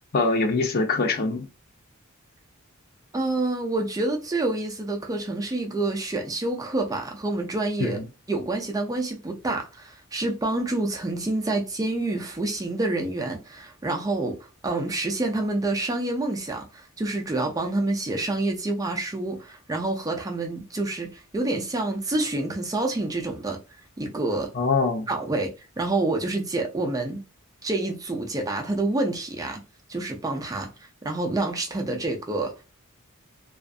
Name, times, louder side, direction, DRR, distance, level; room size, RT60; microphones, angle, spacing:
voice 1, 0.1-1.5 7.8-8.0 24.5-25.1, left 3 dB, 45° left, 0.5 m, -23 dB
voice 2, 3.1-8.0 8.3-14.4 14.6-23.6 24.0-24.5 25.1-27.2 27.6-29.6 29.9-30.7 31.0-32.7, right 2 dB, 15° right, 0.4 m, -27 dB
2.4 x 2.4 x 2.4 m
head